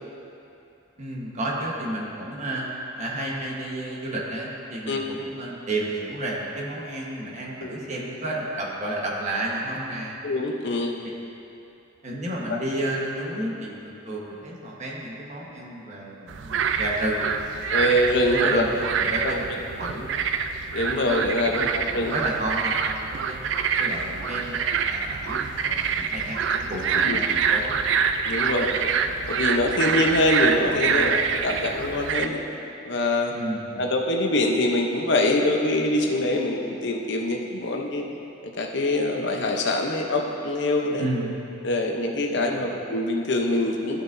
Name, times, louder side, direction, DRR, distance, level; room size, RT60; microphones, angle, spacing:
voice 1, 1.0-2.7 2.9-10.2 12.0-17.8 18.3-19.5 19.8-20.1 21.5-23.4 23.8-24.6 24.9-27.7 30.9-31.2 33.3-33.8 41.0-41.4 42.3-42.7, right 1 dB, 40° right, -3 dB, 1.2 m, -31 dB
voice 2, 10.2-11.0 17.7-18.6 19.2-19.4 20.7-22.1 26.9-27.2 28.2-28.8 29.3-32.4 32.8-33.3 33.8-38.0 38.4-41.1 41.6-44.0, left 1 dB, 65° left, 2 dB, 0.7 m, -24 dB
sound 1, 16.3-32.3, right 6 dB, 65° right, 0.4 m, -26 dB
13.5 x 6.0 x 2.6 m, 2.8 s
head